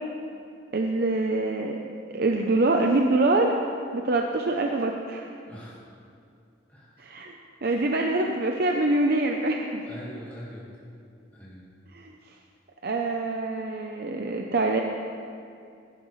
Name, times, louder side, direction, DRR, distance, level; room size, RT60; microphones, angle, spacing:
voice 1, 0.7-1.8 2.1-3.5 3.9-5.3 7.0-7.3 7.6-9.9 11.9-12.1 12.8-14.8, right 2 dB, 55° right, 2 dB, 0.6 m, -25 dB
voice 2, 5.5-5.8 6.7-7.0 9.9-10.8 11.3-11.6, equal, 10° left, -7 dB, 1.7 m, -42 dB
16.0 x 10.5 x 3.2 m, 2.4 s
head